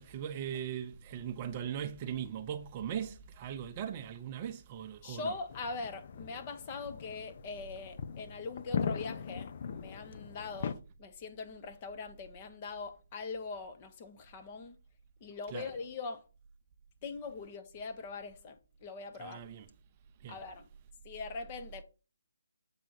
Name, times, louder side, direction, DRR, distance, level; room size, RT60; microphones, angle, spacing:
voice 1, 0.0-5.3 15.5-15.7 19.2-19.7 20.2-20.4, right 9 dB, 30° right, 0.6 m, -39 dB
voice 2, 5.0-14.8 15.2-16.3 17.0-19.5 20.3-20.7 21.0-21.8, left 4 dB, 30° left, 1.0 m, -42 dB
sound 1, 5.5-10.7, left 7 dB, 45° left, 0.5 m, -39 dB
7.4 x 4.7 x 4.1 m
figure-of-eight pair, 145°, 0 cm